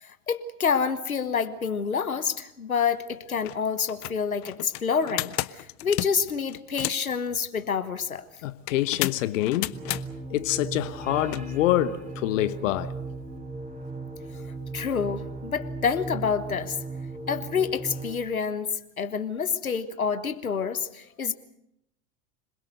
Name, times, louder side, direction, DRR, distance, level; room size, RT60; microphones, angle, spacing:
voice 1, 0.0-8.3 14.7-16.8 17.3-21.3, left 6 dB, 90° left, 1.2 m, -28 dB
sound 1, 2.9-3.0 3.3-3.6 3.9-7.1 8.7-10.0 11.3-11.4, left 20 dB, 45° left, 1.0 m, -32 dB
voice 2, 8.4-9.7 10.3-12.9, left 14 dB, 65° left, 1.2 m, -26 dB
sound 2, 9.7-18.1, right 2 dB, 20° right, 6.9 m, -37 dB
26.5 x 21.5 x 6.7 m
figure-of-eight pair, 85°, 41 cm